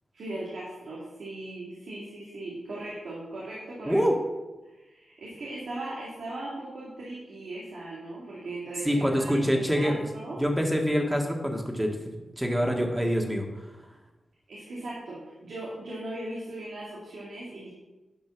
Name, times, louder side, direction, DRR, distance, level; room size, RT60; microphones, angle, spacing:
voice 1, 0.1-4.0 4.7-10.4 14.5-17.7, right 2 dB, 85° right, -6 dB, 2.5 m, -38 dB
voice 2, 3.8-4.2 8.8-10.1 10.4-13.5, equal, 5° right, 1 dB, 2.0 m, -26 dB
10.5 x 5.1 x 6.3 m, 1.1 s
cardioid pair, 65°, 0 cm